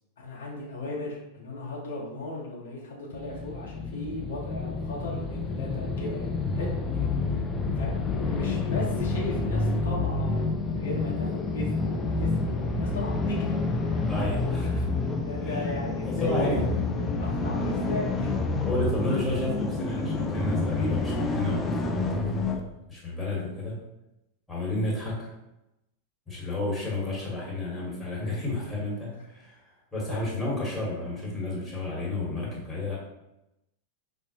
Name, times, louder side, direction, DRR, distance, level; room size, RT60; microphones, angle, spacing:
voice 1, 0.2-6.7 7.8-7.9 8.2-13.6 15.2-18.4 28.3-28.4, left 1 dB, 65° left, -4 dB, 0.8 m, -36 dB
sound 1, 3.1-22.6, left 3 dB, 15° left, 0.4 m, -28 dB
voice 2, 14.1-14.9 15.4-15.6 16.0-16.7 18.6-23.8 24.5-25.3 26.3-29.6 29.9-33.0, left 2 dB, ahead, -6 dB, 1.5 m, -31 dB
5.0 x 2.1 x 2.8 m, 0.90 s
figure-of-eight pair, 90°, 0 cm